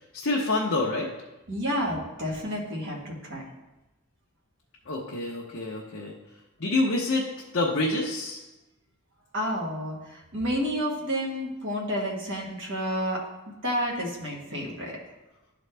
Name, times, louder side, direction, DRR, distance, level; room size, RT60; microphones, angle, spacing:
voice 1, 0.1-1.1 4.9-6.1 6.6-7.2 7.5-8.4, left 2 dB, 55° left, -4 dB, 0.9 m, -27 dB
voice 2, 1.5-3.4 9.3-13.2 13.6-15.0, equal, 55° right, -3 dB, 1.6 m, -30 dB
12.0 x 4.0 x 3.3 m, 1.0 s
head